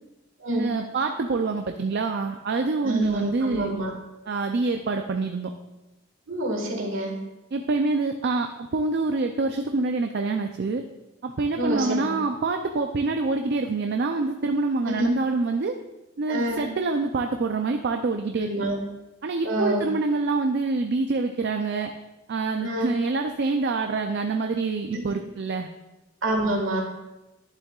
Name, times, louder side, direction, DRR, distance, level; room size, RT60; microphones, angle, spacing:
voice 1, 0.5-3.7 4.3-5.5 7.5-10.8 11.2-15.8 16.2-18.5 19.2-21.9 22.3-25.7, right 3 dB, 50° right, 5 dB, 0.4 m, -26 dB
voice 2, 2.8-3.9 6.3-7.1 11.5-12.1 14.8-15.1 16.3-16.6 18.4-18.8 19.4-19.8 22.6-22.9 24.9-25.0 26.2-26.8, right 1 dB, 65° right, 1 dB, 1.7 m, -27 dB
10.5 x 7.3 x 2.4 m, 1.0 s
head